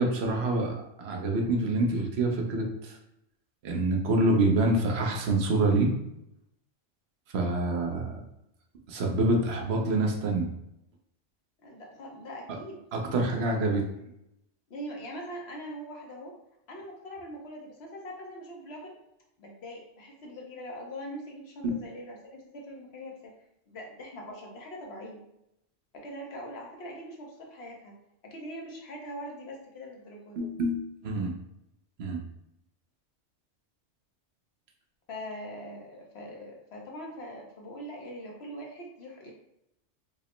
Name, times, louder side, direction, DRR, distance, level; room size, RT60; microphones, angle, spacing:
voice 1, 0.0-3.0 3.6-5.9 7.3-8.2 8.9-10.5 12.9-13.8 30.4-31.3 32.0-32.2, right 2 dB, 60° right, 1 dB, 0.9 m, -26 dB
voice 2, 11.6-12.8 14.7-16.3 16.7-19.0 19.4-23.3 23.7-25.2 25.9-27.9 28.2-30.4 35.1-39.3, equal, 60° left, 0 dB, 1.0 m, -42 dB
4.9 x 2.0 x 3.1 m, 0.82 s
omnidirectional pair, 1.2 m